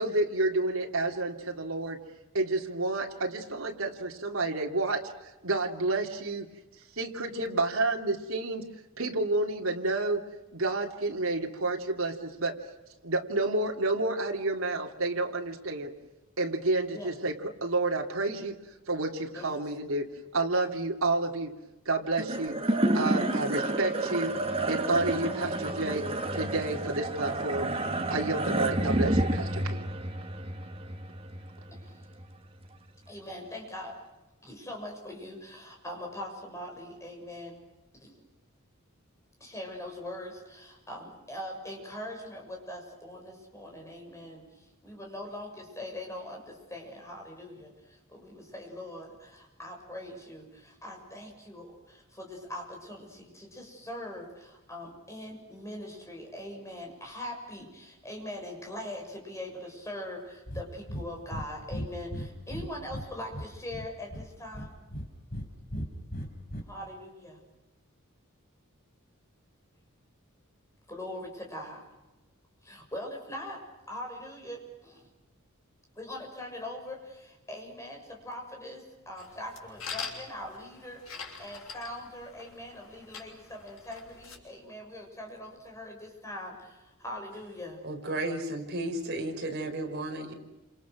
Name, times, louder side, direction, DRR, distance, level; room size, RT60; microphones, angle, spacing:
voice 1, 0.0-2.0 2.3-5.1 5.4-6.5 7.0-8.7 9.0-10.2 10.5-12.6 13.0-15.9 16.4-17.3 17.6-18.6 18.9-20.1 20.3-21.5 21.8-22.6 22.9-24.3 24.7-26.0 26.3-27.7 28.1-29.9, right 2 dB, 80° right, 0 dB, 3.0 m, -30 dB
sound 1, 22.2-32.7, right 1 dB, 25° right, 2.1 m, -30 dB
voice 2, 31.7-32.1 33.1-34.0 34.4-37.6 37.9-38.2 39.4-64.8 66.7-67.4 70.9-71.8 72.6-73.6 73.9-75.1 75.9-87.8, left 1 dB, 15° left, 1 dB, 6.9 m, -42 dB
Breathing, 60.5-60.6 60.9-61.1 61.3-61.5 61.7-63.1 63.3-64.2 64.5-65.5 65.7-66.6, equal, 45° left, 4.7 m, -36 dB
sound 2, 79.2-84.4, left 5 dB, 80° left, 6.6 m, -44 dB
voice 3, 87.8-90.3, right 1 dB, 50° right, 2 dB, 5.2 m, -33 dB
29.0 x 27.5 x 6.4 m, 1.0 s
head